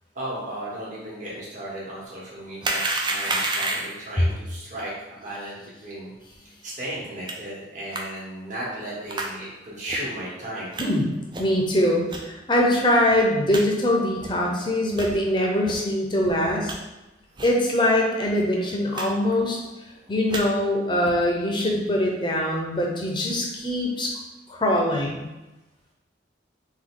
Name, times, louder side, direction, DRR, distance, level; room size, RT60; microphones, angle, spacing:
voice 1, 0.1-6.1 6.6-10.7, right 1 dB, 40° right, -7 dB, 1.3 m, -35 dB
sound 1, 2.6-4.1 7.3-7.4 7.9-8.0 9.1-9.3 9.9-10.0 10.7-10.8 11.3-11.6 12.1-12.2 12.8-12.9 13.1-13.2 13.5-13.6 14.2-14.3 14.9-15.1 15.6-15.8 16.2-16.7 17.4-17.6 17.9-18.0 18.2-18.4 18.9-19.1 19.3-19.7 20.1-20.4 21.0-21.3, right 2 dB, 25° right, 0.4 m, -29 dB
voice 2, 11.4-16.7 17.4-19.6 20.1-24.2 24.5-25.3, left 1 dB, 25° left, -1 dB, 0.7 m, -23 dB
3.8 x 3.3 x 3.7 m, 1.0 s
head